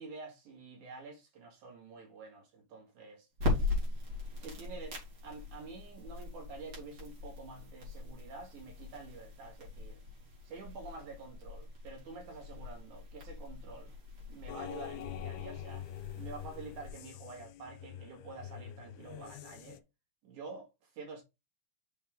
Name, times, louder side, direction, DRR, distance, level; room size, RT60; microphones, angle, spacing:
voice 1, 0.0-4.0 4.4-5.0 5.2-10.0 10.4-13.9 14.3-15.9 16.2-19.8 20.2-21.2, right 3 dB, 75° right, 3.2 m, -48 dB
sound 1, 3.3-16.9, left 3 dB, 45° right, 3.7 m, -40 dB
sound 2, 14.5-19.8, left 10 dB, 80° left, 2.0 m, -45 dB
6.3 x 5.6 x 3.6 m
omnidirectional pair, 3.5 m